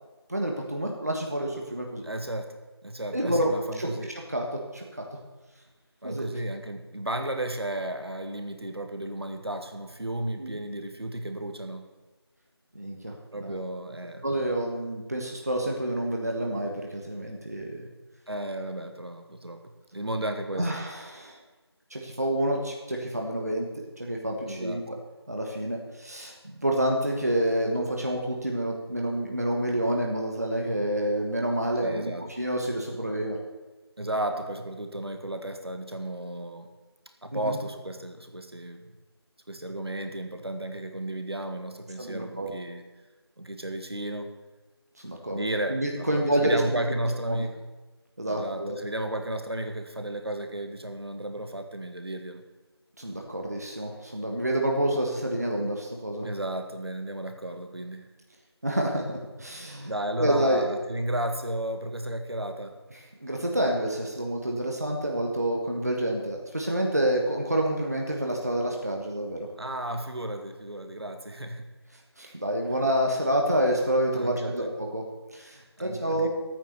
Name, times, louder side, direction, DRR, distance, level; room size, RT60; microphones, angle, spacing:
voice 1, 0.3-2.0 3.1-3.5 3.8-5.0 6.0-6.3 10.4-10.6 12.7-13.6 14.2-17.9 20.6-21.4 21.9-23.7 24.0-25.0 25.3-32.1 32.4-33.4 37.3-37.6 42.0-42.5 45.0-46.8 47.3-47.4 48.2-48.8 53.0-56.3 58.6-59.9 60.2-60.6 63.2-69.5 72.2-75.0 75.3-76.3, right 1 dB, 35° right, 1 dB, 1.4 m, -28 dB
voice 2, 2.0-4.1 6.0-11.9 13.3-14.3 18.3-20.7 24.5-24.8 31.8-32.2 32.9-33.0 34.0-36.7 37.2-38.8 39.5-42.8 43.4-44.3 45.3-45.8 46.1-47.6 48.3-52.4 56.2-58.1 59.8-62.8 69.6-71.7 74.1-74.7 75.8-76.3, right 1 dB, 65° right, 6 dB, 1.8 m, -33 dB
12.5 x 9.3 x 6.7 m, 1.2 s
figure-of-eight pair, 180°, 14 cm